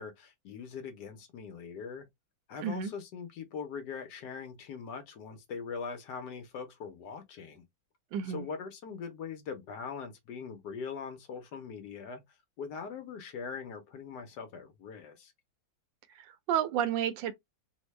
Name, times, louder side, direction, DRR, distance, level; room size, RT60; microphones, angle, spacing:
voice 1, 0.0-2.1 2.5-7.6 8.3-12.2 12.6-15.3, left 6 dB, 70° left, 1.2 m, -41 dB
voice 2, 2.6-2.9 8.1-8.4 16.1-17.3, right 9 dB, 80° right, 1.3 m, -31 dB
3.5 x 2.1 x 3.1 m
omnidirectional pair, 2.1 m